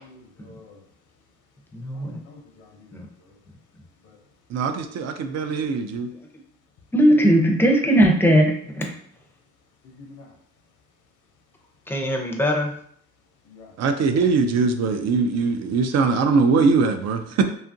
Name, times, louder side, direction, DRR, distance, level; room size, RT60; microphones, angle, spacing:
voice 1, 0.1-0.8 1.9-2.9 9.8-10.3 13.5-13.7, left 3 dB, 75° left, 3 dB, 0.7 m, -47 dB
voice 2, 1.7-2.2 2.9-3.1 6.9-8.9 11.9-12.8, equal, 5° left, 1 dB, 0.5 m, -19 dB
voice 3, 4.5-6.1 13.8-17.4, right 4 dB, 60° right, 7 dB, 0.4 m, -21 dB
2.8 x 2.4 x 2.6 m, 0.64 s
cardioid pair, 90°, 30 cm